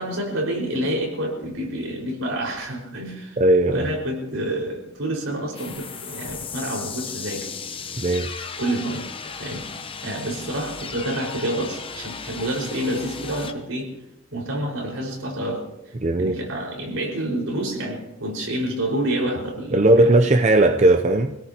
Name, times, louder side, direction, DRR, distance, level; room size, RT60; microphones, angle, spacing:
voice 1, 0.0-3.4 3.7-7.5 8.4-13.9 14.3-15.6 16.2-20.3, right 1 dB, 80° right, -1 dB, 5.1 m, -28 dB
voice 2, 3.4-3.9 8.0-8.4 16.0-16.4 19.7-21.4, right 2 dB, 35° right, 6 dB, 0.6 m, -17 dB
sound 1, 5.6-13.5, left 6 dB, 25° left, 0.9 m, -35 dB
26.0 x 17.5 x 2.9 m, 0.90 s
head